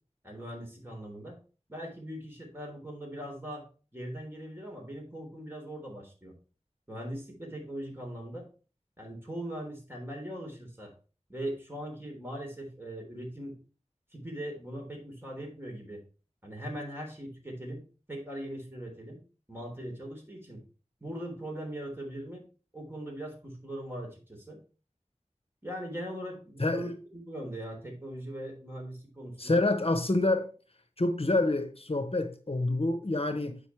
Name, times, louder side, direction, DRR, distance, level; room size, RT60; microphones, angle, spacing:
voice 1, 0.2-1.4 1.7-3.6 3.9-6.3 6.9-8.5 9.0-10.9 11.3-13.6 14.1-16.0 16.4-17.8 18.1-19.2 19.5-20.6 21.0-22.4 22.7-24.6 25.6-29.6, right 1 dB, 20° right, 3.7 m, -40 dB
voice 2, 26.6-26.9 29.4-30.5 31.0-33.6, left 2 dB, 55° left, 0.9 m, -27 dB
8.3 x 5.3 x 4.6 m
wide cardioid pair, 40°, 12 cm